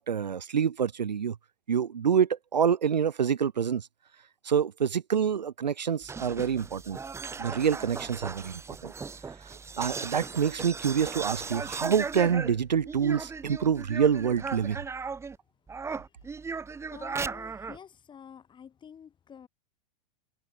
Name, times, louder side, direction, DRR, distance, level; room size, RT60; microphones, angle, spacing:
voice 1, 0.0-1.3 1.7-3.9 4.4-7.0 7.4-8.9 9.8-14.8, right 7 dB, 85° right, 0.9 m, -27 dB
sound 1, 6.0-15.4 15.7-17.8, right 5 dB, 10° right, 1.3 m, -37 dB
voice 2, 15.9-16.6 16.9-19.5, left 7 dB, 20° left, 4.3 m, -50 dB
hypercardioid pair, 100°, 21 cm